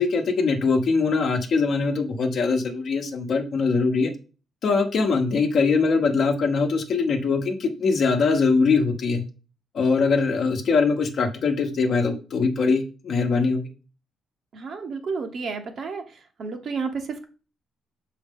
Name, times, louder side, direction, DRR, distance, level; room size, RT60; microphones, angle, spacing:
voice 1, 0.0-4.1 4.6-9.2 9.7-13.7, left 4 dB, 45° left, 4 dB, 1.1 m, -22 dB
voice 2, 14.5-16.0 16.4-17.2, right 4 dB, 45° right, 6 dB, 0.9 m, -31 dB
6.4 x 4.7 x 3.6 m, 0.35 s
cardioid pair, 165°, 0 cm